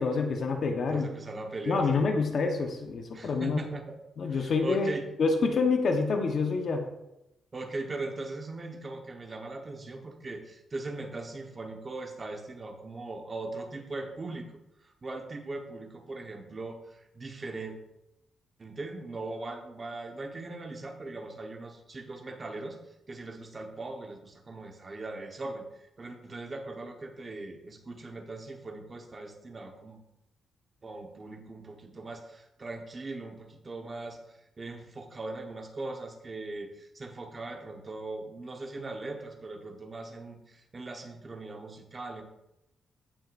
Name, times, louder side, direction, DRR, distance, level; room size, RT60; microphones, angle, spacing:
voice 1, 0.0-1.1 1.7-3.6 4.2-4.9 5.2-6.8, left 4 dB, 50° left, 4 dB, 1.1 m, -27 dB
voice 2, 0.9-2.0 3.1-4.0 4.3-5.0 7.5-14.5 14.8-17.7 18.6-22.8 23.1-25.6 26.0-30.0 30.8-42.2, right 2 dB, 25° right, 3 dB, 1.2 m, -40 dB
15.5 x 6.2 x 2.6 m, 0.88 s
wide cardioid pair, 155°, 0 cm